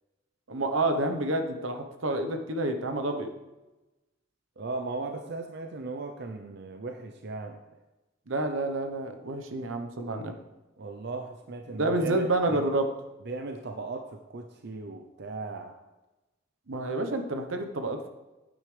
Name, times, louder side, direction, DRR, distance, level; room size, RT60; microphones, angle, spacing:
voice 1, 0.5-3.3 8.3-10.3 11.7-12.9 16.7-18.1, right 2 dB, 85° right, 6 dB, 1.1 m, -29 dB
voice 2, 4.6-7.6 10.8-12.7 13.2-15.8, right 3 dB, 60° right, 4 dB, 0.7 m, -37 dB
9.5 x 8.9 x 3.4 m, 1.0 s
head